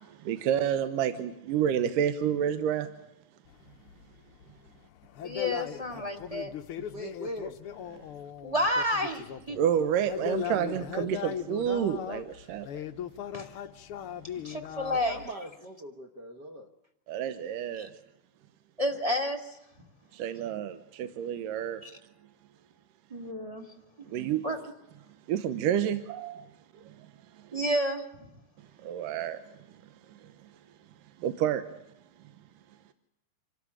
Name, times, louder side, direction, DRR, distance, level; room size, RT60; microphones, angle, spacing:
voice 1, 0.2-2.9 8.0-8.1 9.6-12.7 17.1-17.9 20.1-21.8 24.1-24.4 25.3-26.5 26.8-27.1 27.4-27.5 28.8-29.4 29.7-29.8 30.1-30.3 31.2-31.6, right 9 dB, 80° right, 2.5 m, -29 dB
sound 1, 3.5-9.6 9.9-15.3, left 9 dB, 85° left, 1.2 m, -38 dB
voice 2, 5.2-6.5 8.4-9.6 13.3-13.5 14.4-15.2 17.8-17.9 18.8-19.6 21.8-21.9 23.1-23.6 24.4-24.6 27.5-28.3, left 1 dB, 15° right, 1.3 m, -30 dB
voice 3, 6.9-7.6 10.1-11.2 14.9-16.7, right 1 dB, 50° right, 1.3 m, -41 dB
27.0 x 13.0 x 8.8 m
omnidirectional pair, 3.9 m